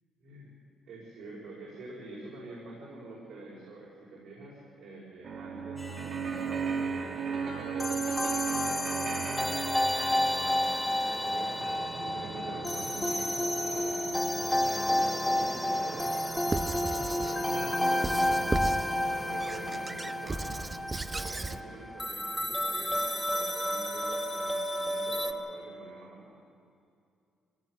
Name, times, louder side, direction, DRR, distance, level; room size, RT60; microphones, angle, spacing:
voice 1, 0.2-0.5 0.8-8.0 8.5-11.7 12.0-14.1 14.6-18.6 19.1-20.7 21.0-26.4, right 2 dB, 80° right, -4 dB, 5.2 m, -47 dB
sound 1, 5.2-21.8, right 5 dB, 60° right, 1.7 m, -38 dB
sound 2, 5.8-6.5 7.8-25.3, left 1 dB, 5° left, 2.0 m, -31 dB
Squeak / Writing, 16.5-17.4 18.0-18.9 19.4-21.6, right 3 dB, 25° right, 0.7 m, -35 dB
23.5 x 17.0 x 8.0 m, 2.4 s
cardioid pair, 90°, 0 cm